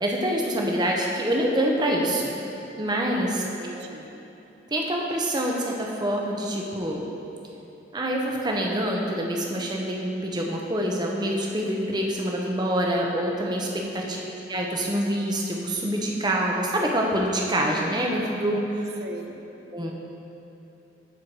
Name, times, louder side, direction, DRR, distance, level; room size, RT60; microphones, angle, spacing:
voice 1, 0.0-2.4 2.8-3.4 3.7-3.8 4.7-7.0 7.9-18.6 18.9-19.0 19.7-19.9, right 1 dB, 20° right, -1 dB, 0.8 m, -26 dB
voice 2, 3.3-4.1 13.8-14.3 19.0-19.4, right 2 dB, 55° right, 3 dB, 0.7 m, -41 dB
13.0 x 4.5 x 4.6 m, 3.0 s
head